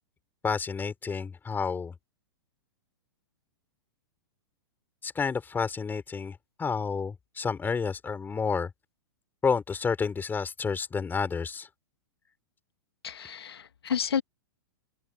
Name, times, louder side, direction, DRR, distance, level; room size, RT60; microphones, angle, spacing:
voice 1, 0.4-1.9 5.0-8.7 9.4-11.7, left 5 dB, 15° left, 5.4 m, -30 dB
voice 2, 13.0-14.2, left 8 dB, 75° left, 2.4 m, -30 dB
open air
hypercardioid pair, 110°, 13 cm